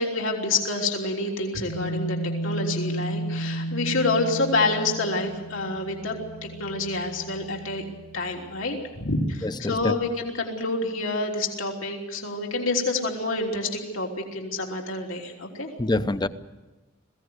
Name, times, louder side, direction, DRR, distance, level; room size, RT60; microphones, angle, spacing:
voice 1, 0.0-2.2 2.4-6.2 6.6-7.8 8.1-16.0, left 2 dB, 75° left, 0 dB, 3.4 m, -28 dB
sound 1, 1.7-8.4, right 1 dB, 55° left, 2.4 m, -33 dB
voice 2, 9.4-9.9 15.8-16.3, left 2 dB, 20° left, 12 dB, 0.7 m, -26 dB
21.0 x 16.5 x 9.6 m, 1.1 s
head